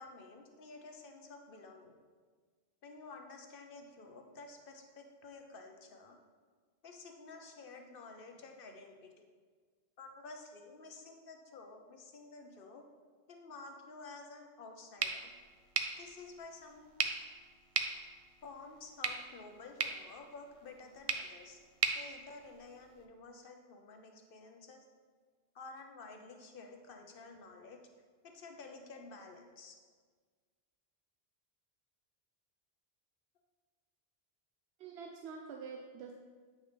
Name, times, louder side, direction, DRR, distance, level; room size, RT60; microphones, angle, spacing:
voice 1, 0.0-2.0 2.8-6.2 6.8-9.2 10.0-12.9 13.3-15.3 16.0-16.9 18.4-21.6 21.9-24.9 25.5-27.8 28.2-29.8, left 3 dB, 65° left, 4 dB, 1.0 m, -51 dB
sound 1, 15.0-23.0, right 5 dB, 45° right, 0.5 m, -39 dB
voice 2, 34.8-36.1, right 5 dB, 90° right, 2 dB, 0.9 m, -46 dB
8.5 x 5.7 x 3.4 m, 1.5 s
omnidirectional pair, 1.0 m